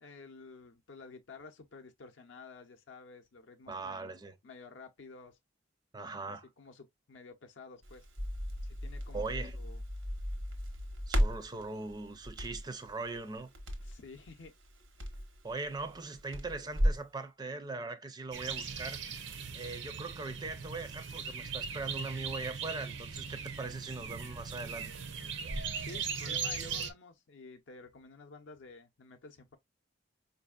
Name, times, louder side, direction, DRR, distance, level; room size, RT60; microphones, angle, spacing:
voice 1, 0.0-4.1 4.4-5.4 6.3-8.1 8.6-9.8 13.8-14.5 25.8-29.6, left 4 dB, 65° left, 0.6 m, -51 dB
voice 2, 3.7-4.4 5.9-6.5 9.1-9.6 11.1-13.5 15.4-19.0 19.5-24.9, right 3 dB, 20° right, 0.4 m, -40 dB
Crackle, 7.8-17.1, equal, 85° right, 1.1 m, -36 dB
sound 1, 18.3-26.9, right 5 dB, 65° right, 0.6 m, -39 dB
4.8 x 2.6 x 2.3 m
head